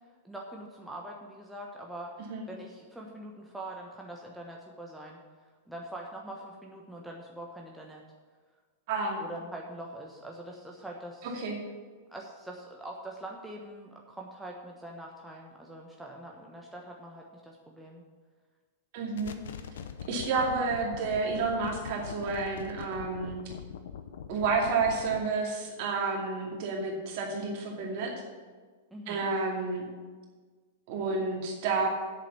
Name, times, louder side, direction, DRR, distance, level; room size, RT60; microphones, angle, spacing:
voice 1, 0.2-5.2 5.7-8.0 9.2-11.4 12.1-18.0 28.9-29.2, right 1 dB, 5° right, -1 dB, 1.1 m, -43 dB
voice 2, 8.9-9.2 11.2-11.5 18.9-19.4 20.1-23.4 24.3-28.1 29.1-29.8 30.9-31.9, right 4 dB, 45° right, -1 dB, 2.4 m, -30 dB
sound 1, 19.2-25.3, left 8 dB, 60° left, 0.7 m, -43 dB
8.3 x 7.3 x 7.2 m, 1.4 s
figure-of-eight pair, 95°, 0 cm